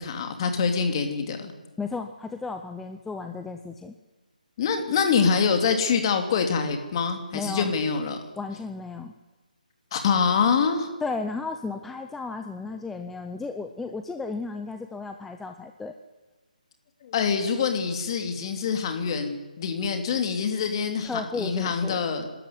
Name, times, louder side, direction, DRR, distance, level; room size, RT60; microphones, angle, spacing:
voice 1, 0.0-1.5 4.6-8.2 9.9-10.9 17.0-22.3, left 6 dB, 35° left, 6 dB, 2.9 m, -25 dB
voice 2, 1.8-3.9 7.3-7.7 8.4-9.1 11.0-15.9 21.0-22.0, left 4 dB, 5° left, 6 dB, 0.6 m, -34 dB
25.0 x 13.0 x 9.6 m, 1.2 s
hypercardioid pair, 160°, 5 cm